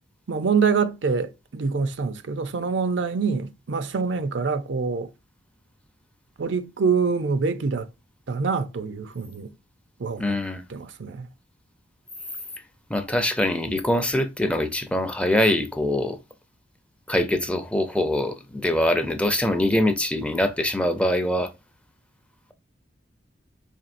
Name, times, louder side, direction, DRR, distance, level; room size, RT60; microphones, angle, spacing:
voice 1, 0.3-5.1 6.4-7.9 8.3-9.5 10.0-10.4 10.7-11.3, right 5 dB, 70° right, 0.5 m, -25 dB
voice 2, 10.2-10.6 12.9-16.2 17.1-21.5, left 1 dB, 5° left, 0.5 m, -23 dB
4.4 x 3.1 x 2.5 m
head